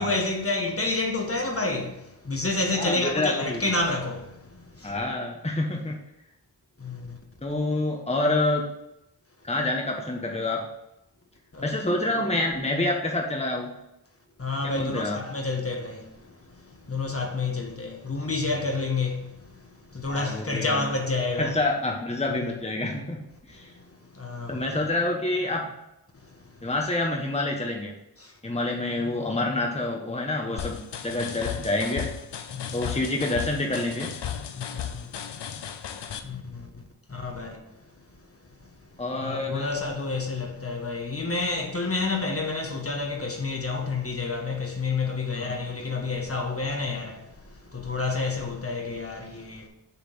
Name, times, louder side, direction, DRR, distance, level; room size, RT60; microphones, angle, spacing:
voice 1, 0.0-5.0 6.8-7.2 11.5-12.1 14.4-21.5 22.4-22.5 23.5-24.9 26.2-26.7 28.2-28.3 32.5-32.9 34.5-35.1 36.2-36.8 37.1-37.6 39.1-49.7, left 3 dB, 35° left, 1.5 m, -30 dB
voice 2, 2.7-3.7 4.8-6.0 7.4-8.7 9.4-10.6 11.6-13.7 14.6-15.2 20.1-20.8 21.3-23.7 24.5-25.7 26.6-27.9 28.4-32.1 32.7-34.1 39.0-39.8 45.3-45.6, left 2 dB, 15° left, 1.3 m, -27 dB
sound 1, 30.6-36.2, left 8 dB, 85° left, 0.7 m, -35 dB
7.0 x 3.7 x 6.3 m
cardioid pair, 50°, 41 cm